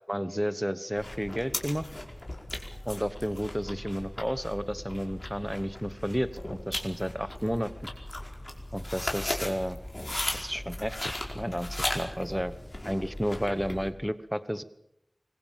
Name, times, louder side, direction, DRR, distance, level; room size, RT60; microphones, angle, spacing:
voice 1, 0.1-1.9 2.8-7.7 8.7-9.8 10.4-12.5 12.8-14.6, equal, ahead, 13 dB, 1.1 m, -32 dB
sound 1, 1.0-13.9, left 1 dB, 35° left, 5.0 m, -37 dB
25.0 x 22.0 x 7.5 m, 0.79 s
wide cardioid pair, 50°, 0 cm